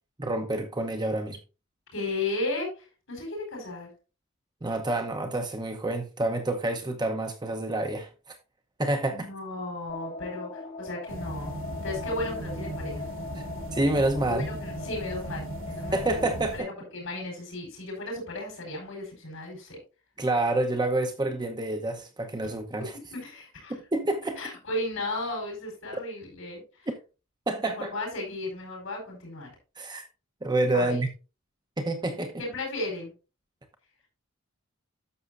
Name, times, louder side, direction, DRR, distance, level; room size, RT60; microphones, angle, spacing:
voice 1, 0.2-1.4 4.6-8.4 8.8-9.3 13.7-14.5 15.9-16.6 20.2-22.9 23.7-24.4 26.9-27.0 27.5-28.0 29.8-30.1 30.4-31.1 31.8-32.4, right 2 dB, 20° right, 0.8 m, -28 dB
voice 2, 1.9-3.9 9.1-11.5 11.8-13.1 14.2-16.2 16.5-19.8 23.1-23.8 24.4-26.9 27.6-29.5 30.7-31.0 32.4-33.1, left 2 dB, 80° left, 4.7 m, -35 dB
sound 1, 9.9-16.4, left 3 dB, 45° left, 2.0 m, -40 dB
sound 2, 11.1-16.6, right 1 dB, 75° right, 1.8 m, -38 dB
11.0 x 7.0 x 2.5 m
head